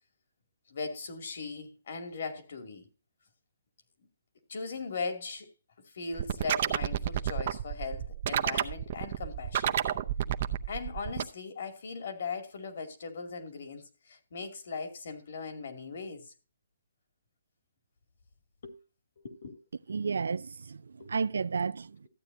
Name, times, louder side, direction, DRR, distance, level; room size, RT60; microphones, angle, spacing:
voice 1, 0.7-2.9 4.5-5.5 5.9-9.8 10.7-16.3 18.6-18.8 19.2-19.6 21.0-21.2, left 4 dB, 55° left, 2.4 m, -39 dB
sound 1, 6.1-11.2, right 10 dB, 40° right, 0.7 m, -30 dB
voice 2, 19.9-22.1, right 5 dB, 80° right, 0.4 m, -32 dB
14.0 x 8.9 x 2.7 m
hypercardioid pair, 165°, 0 cm